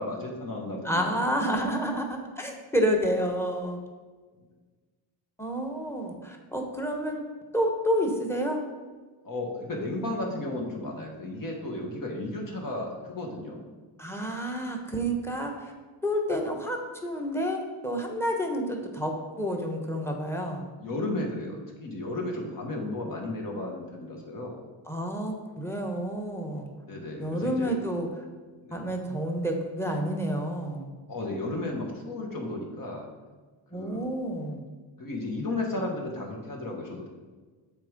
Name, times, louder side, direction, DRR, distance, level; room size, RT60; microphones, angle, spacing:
voice 1, 0.0-1.7 9.2-13.6 20.8-24.6 26.9-27.8 28.6-28.9 31.1-33.1 33.7-34.0 35.0-37.1, left 2 dB, 45° left, 0 dB, 1.6 m, -34 dB
voice 2, 0.8-3.8 5.4-7.2 7.5-8.6 14.0-15.7 16.0-20.6 24.9-26.7 27.2-28.1 28.7-30.9 33.7-34.6, equal, 5° left, 2 dB, 1.1 m, -29 dB
7.4 x 3.7 x 5.2 m, 1.4 s
cardioid pair, 95°, 45 cm